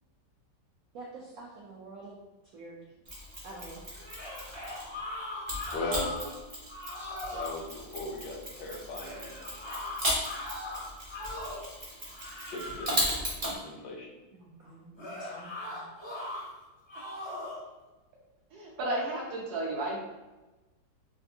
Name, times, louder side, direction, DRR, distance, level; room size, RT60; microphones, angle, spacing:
voice 1, 0.9-2.1 2.5-2.8 3.4-3.8 14.3-15.8, right 2 dB, 90° right, -3 dB, 0.7 m, -47 dB
Mechanisms, 3.0-5.0 5.5-13.6, equal, 40° right, 0.6 m, -36 dB
sound 1, 3.9-6.3 6.7-7.6 9.0-11.7 12.1-13.1 15.0-16.5 16.9-17.6, left 2 dB, 45° left, 0.3 m, -40 dB
voice 2, 5.7-6.1 7.3-9.6 12.5-13.1 13.6-14.1, left 2 dB, 75° left, -1 dB, 1.1 m, -38 dB
voice 3, 18.5-20.0, right 1 dB, 70° right, -3 dB, 1.0 m, -33 dB
3.3 x 2.5 x 2.6 m, 1.1 s
omnidirectional pair, 2.1 m